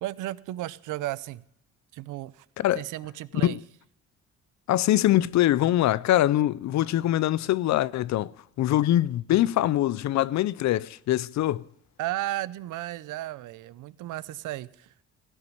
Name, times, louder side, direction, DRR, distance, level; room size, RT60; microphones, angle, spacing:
voice 1, 0.0-1.4 1.9-2.5 2.7-3.6 12.0-14.9, right 15 dB, 85° right, 0.6 m, -34 dB
voice 2, 4.7-8.3 8.6-11.6, left 13 dB, 65° left, 0.5 m, -23 dB
16.0 x 5.9 x 9.3 m
cardioid pair, 90°, 30 cm